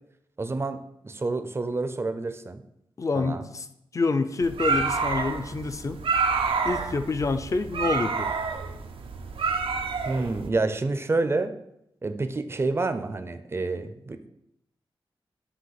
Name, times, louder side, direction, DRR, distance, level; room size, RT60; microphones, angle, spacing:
voice 1, 0.4-2.6 3.1-3.4 10.0-11.5 12.0-14.3, right 3 dB, 30° right, 10 dB, 0.5 m, -28 dB
voice 2, 3.0-3.7 3.9-6.0 6.6-8.3, left 3 dB, 35° left, 10 dB, 0.5 m, -27 dB
sound 1, 4.4-10.5, right 4 dB, 90° right, 0.6 m, -28 dB
7.8 x 3.0 x 5.8 m, 0.80 s
wide cardioid pair, 120°, 9 cm